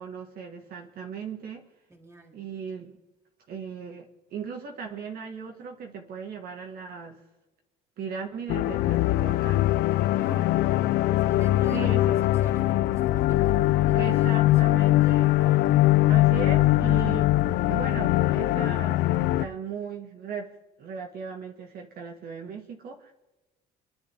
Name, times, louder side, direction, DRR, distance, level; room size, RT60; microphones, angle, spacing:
voice 1, 0.0-1.6 2.3-2.9 3.5-4.1 4.3-7.2 8.0-9.7 11.7-12.0 13.9-15.3 16.1-17.3 17.7-23.1, right 6 dB, 65° right, 2 dB, 2.2 m, -37 dB
voice 2, 1.9-2.4 10.1-16.1, right 2 dB, 15° right, 0 dB, 3.8 m, -48 dB
sound 1, 8.5-19.5, left 15 dB, 85° left, 0.6 m, -22 dB
25.5 x 11.5 x 3.8 m, 1.1 s
cardioid pair, 110°, 17 cm